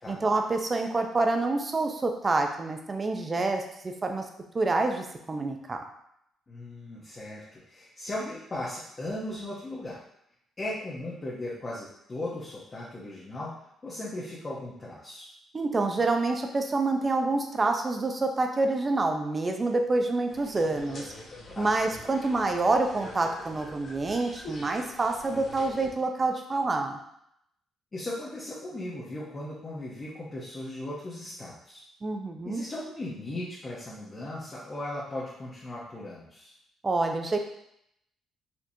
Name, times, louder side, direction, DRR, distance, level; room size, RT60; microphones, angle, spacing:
voice 1, 0.1-4.3 4.5-5.8 15.5-21.1 21.6-27.0 32.0-32.7 36.8-37.4, right 3 dB, 30° right, 4 dB, 0.5 m, -27 dB
voice 2, 6.5-10.0 10.6-13.5 13.8-15.3 21.5-21.7 27.9-31.8 32.4-36.5, left 1 dB, 30° left, -6 dB, 0.8 m, -37 dB
sound 1, 20.3-25.9, left 1 dB, 55° left, 1.1 m, -45 dB
4.3 x 2.9 x 2.7 m, 0.76 s
cardioid pair, 90°, 0 cm